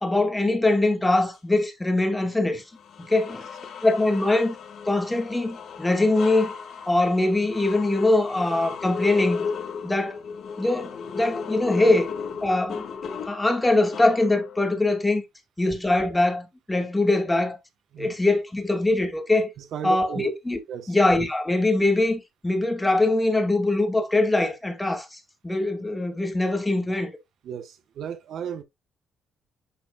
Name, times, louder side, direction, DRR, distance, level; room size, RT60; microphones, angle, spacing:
voice 1, 0.0-2.6 3.0-3.5 3.8-4.5 4.9-6.5 6.9-9.5 9.8-10.2 10.6-12.1 12.4-12.9 13.3-15.2 15.6-17.6 18.0-19.5 19.8-20.6 20.9-25.1 25.4-27.1, left 2 dB, 10° left, 2.4 m, -22 dB
sound 1, 2.0-2.2 2.8-14.7, left 5 dB, 60° left, 2.0 m, -35 dB
voice 2, 19.6-20.3 20.7-21.0 27.4-28.6, right 8 dB, 65° right, 1.2 m, -34 dB
11.5 x 4.3 x 2.4 m
cardioid pair, 110°, 0 cm